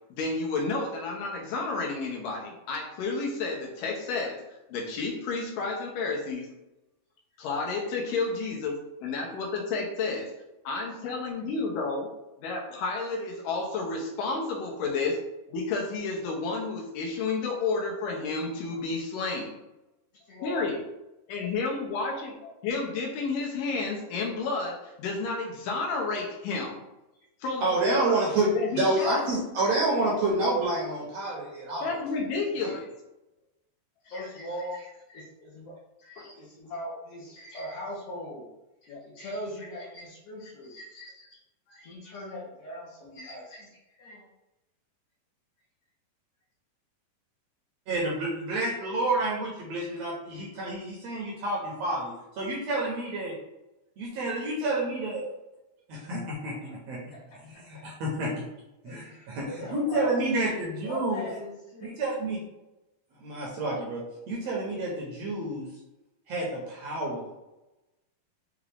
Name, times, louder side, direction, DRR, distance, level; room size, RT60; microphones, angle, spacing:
voice 1, 0.1-4.4 4.7-6.5 7.4-10.3 10.7-12.1 12.4-15.2 15.5-19.6 20.4-20.8 21.3-26.8 27.4-28.3 28.5-29.2 31.8-32.9 36.2-36.3 38.9-39.0, left 3 dB, 85° left, 0 dB, 2.5 m, -31 dB
voice 2, 20.2-20.6 21.4-21.5 32.4-32.7 34.0-35.7 36.0-38.5 38.8-41.4 41.7-44.3 58.8-60.2 60.8-61.9, left 1 dB, 65° left, -5 dB, 1.7 m, -40 dB
voice 3, 27.6-31.9 47.9-53.3 54.0-55.2 55.9-57.1 57.5-58.4 58.8-61.3 61.8-62.4 63.2-65.7 66.3-67.4, right 2 dB, 70° right, -3 dB, 1.7 m, -29 dB
5.9 x 2.5 x 3.4 m, 0.96 s
omnidirectional pair, 3.7 m